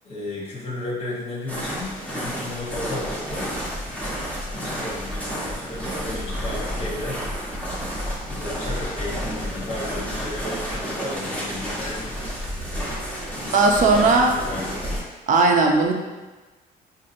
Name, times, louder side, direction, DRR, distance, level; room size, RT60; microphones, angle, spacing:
voice 1, 0.0-3.5 4.5-7.2 8.2-12.1 13.3-14.8, left 2 dB, 35° left, -5 dB, 1.1 m, -34 dB
sound 1, 1.5-15.0, equal, 5° left, 1.2 m, -30 dB
voice 2, 12.9-14.3 15.3-15.9, right 3 dB, 50° right, 2 dB, 0.6 m, -18 dB
4.3 x 2.7 x 2.6 m, 1.2 s
cardioid pair, 110°, 17 cm